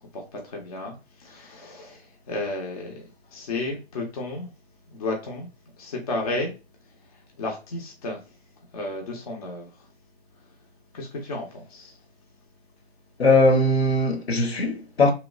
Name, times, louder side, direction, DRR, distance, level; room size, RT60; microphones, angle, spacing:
voice 1, 0.0-4.5 4.9-5.5 5.8-6.6 6.8-8.4 8.7-9.9 10.4-10.5 10.9-12.0, left 2 dB, 35° left, 0.6 m, -33 dB
voice 2, 13.2-15.1, left 2 dB, 70° left, 0.9 m, -20 dB
3.0 x 2.0 x 2.4 m
figure-of-eight pair, 140°, 33 cm